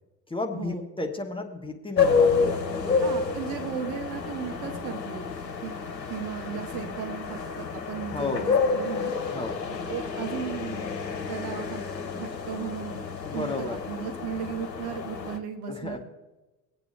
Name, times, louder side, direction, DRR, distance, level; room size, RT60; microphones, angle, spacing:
voice 1, 0.3-3.2 8.1-8.5 9.3-9.6 13.2-13.8 15.7-16.0, left 3 dB, 10° left, 2 dB, 1.3 m, -33 dB
sound 1, 2.0-15.4, left 5 dB, 85° left, 0.8 m, -29 dB
voice 2, 3.0-5.3 5.6-5.8 6.1-9.1 9.9-10.9 11.3-11.8 12.1-13.1 13.3-16.0, right 7 dB, 60° right, 5 dB, 1.6 m, -35 dB
22.0 x 8.6 x 3.4 m, 1.1 s
figure-of-eight pair, 55°, 49 cm